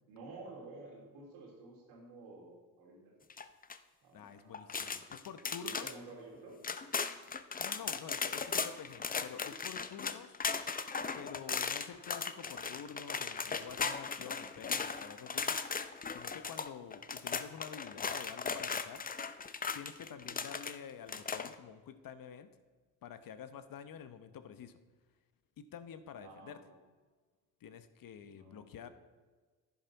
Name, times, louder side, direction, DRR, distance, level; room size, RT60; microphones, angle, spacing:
voice 1, 0.0-3.1 4.0-5.3 5.6-6.6 20.1-20.4 26.1-26.8 28.3-28.9, right 3 dB, 85° right, -2 dB, 3.0 m, -52 dB
sound 1, 3.3-3.8 4.5-5.9 6.3-6.4 6.6-20.8 21.1-21.6, left 5 dB, 20° left, 0.6 m, -37 dB
voice 2, 4.1-5.9 7.6-10.4 11.1-19.0 19.7-22.5 23.0-24.8 25.6-26.6 27.6-28.9, left 8 dB, 50° left, 11 dB, 0.9 m, -49 dB
10.5 x 9.6 x 4.0 m, 1.4 s
hypercardioid pair, 60°, 44 cm